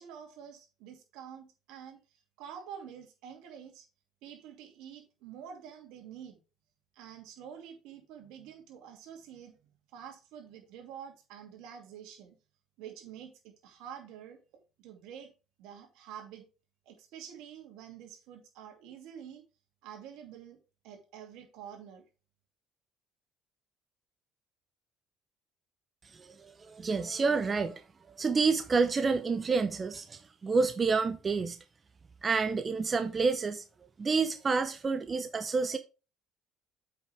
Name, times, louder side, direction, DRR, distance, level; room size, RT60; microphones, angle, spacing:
voice 1, 0.0-2.0 2.4-3.8 4.2-6.4 6.9-9.5 9.9-12.3 12.8-14.4 14.8-15.3 15.6-16.4 16.9-19.4 19.8-20.6 20.8-22.0, right 8 dB, 80° right, 2.6 m, -48 dB
voice 2, 26.1-31.6 32.2-33.6 34.0-35.8, right 4 dB, 30° right, 0.8 m, -29 dB
8.4 x 5.8 x 3.4 m
supercardioid pair, 85°, 0 cm